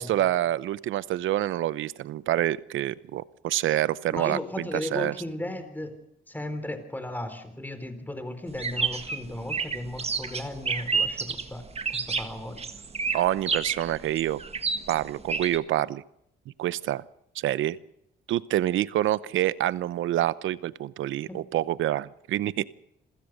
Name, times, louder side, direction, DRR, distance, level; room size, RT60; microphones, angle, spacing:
voice 1, 0.0-5.1 13.1-14.4 14.9-16.0 16.6-17.0 17.3-17.8 18.3-22.7, right 13 dB, 80° right, 18 dB, 0.8 m, -27 dB
voice 2, 4.1-6.0 6.3-11.6 11.9-12.6 21.3-21.4, left 1 dB, 10° left, 9 dB, 4.0 m, -36 dB
sound 1, 8.5-15.6, right 5 dB, 30° right, 1.7 m, -30 dB
27.0 x 15.5 x 6.6 m, 0.77 s
cardioid pair, 90°, 20 cm